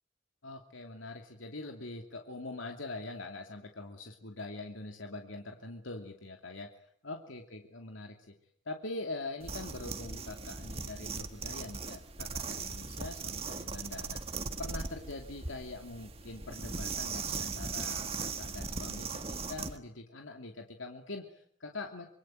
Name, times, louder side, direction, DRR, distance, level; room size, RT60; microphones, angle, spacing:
voice 1, 0.4-6.7 7.0-8.3 8.6-14.2 14.6-22.1, left 2 dB, 85° left, 3 dB, 2.7 m, -43 dB
sound 1, 9.4-19.8, right 4 dB, 30° right, 1.6 m, -39 dB
26.0 x 23.5 x 9.3 m, 0.65 s
head